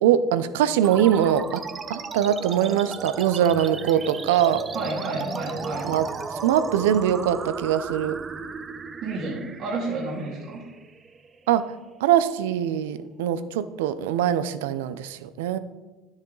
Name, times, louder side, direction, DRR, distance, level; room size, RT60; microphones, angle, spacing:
voice 1, 0.0-1.6 1.9-4.6 5.8-6.1 6.4-8.2 11.5-11.7 12.0-15.6, right 10 dB, 85° right, 14 dB, 0.5 m, -22 dB
sound 1, 0.8-11.8, right 4 dB, 30° right, 0.7 m, -35 dB
voice 2, 4.7-5.9 9.0-10.6, right 3 dB, 55° right, -2 dB, 2.0 m, -30 dB
10.5 x 7.1 x 3.9 m, 1.2 s
supercardioid pair, 85°, 0 cm